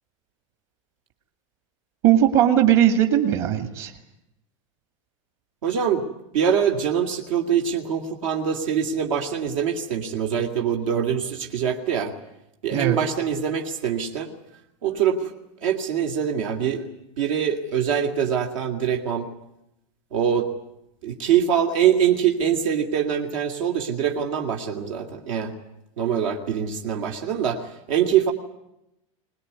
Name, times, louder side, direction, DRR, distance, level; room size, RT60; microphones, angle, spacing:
voice 1, 2.0-3.9 12.7-13.0, right 11 dB, 50° right, 6 dB, 2.2 m, -18 dB
voice 2, 5.6-6.0 6.3-12.1 12.6-14.3 14.8-15.3 15.6-16.9 17.2-19.3 20.1-20.5 21.0-25.5 26.0-27.6 27.9-28.3, right 8 dB, 85° right, 3 dB, 2.7 m, -23 dB
22.5 x 20.0 x 9.7 m, 0.87 s
supercardioid pair, 165°, 17 cm